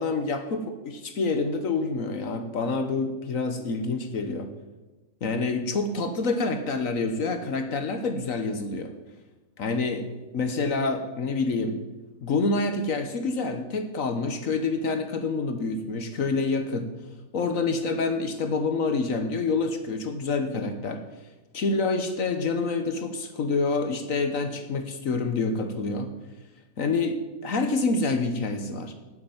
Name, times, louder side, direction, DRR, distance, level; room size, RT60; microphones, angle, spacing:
voice 1, 0.0-4.5 5.2-8.9 9.6-10.0 10.3-11.8 12.2-16.9 17.3-21.0 21.5-26.1 26.8-27.2 27.4-28.9, left 3 dB, 60° left, 7 dB, 1.3 m, -27 dB
8.8 x 8.5 x 9.1 m, 1.1 s
omnidirectional pair, 1.6 m